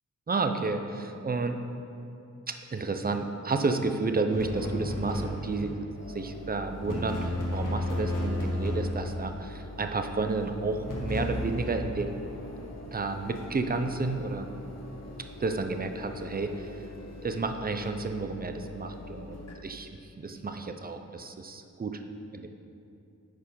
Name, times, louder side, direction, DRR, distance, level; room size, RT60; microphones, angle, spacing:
voice 1, 0.3-1.6 2.5-12.2 12.9-14.5 15.4-16.7 17.2-19.9 20.2-22.0 22.3-22.5, right 3 dB, 30° right, 6 dB, 0.6 m, -31 dB
sound 1, 4.3-5.9 6.7-9.3 10.7-11.9, left 1 dB, 85° left, 1.5 m, -32 dB
sound 2, 5.9-19.5, left 2 dB, 55° left, 1.0 m, -44 dB
9.4 x 4.6 x 5.6 m, 2.6 s
wide cardioid pair, 85°, 31 cm